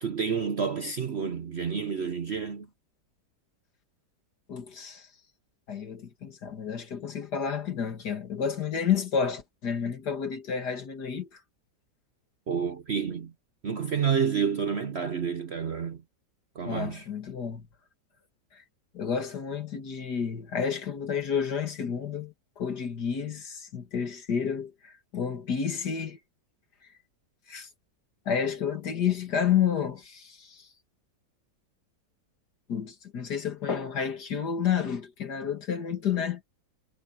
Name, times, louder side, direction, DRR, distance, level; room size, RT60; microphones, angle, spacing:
voice 1, 0.0-2.7 12.5-13.3 13.6-16.0 16.5-17.1, right 6 dB, 50° right, 0.8 m, -29 dB
voice 2, 4.5-5.1 5.7-11.4 16.6-17.7 18.9-26.2 27.5-27.7 28.3-30.7 32.7-36.4, left 7 dB, 65° left, 2.6 m, -30 dB
omnidirectional pair, 1.9 m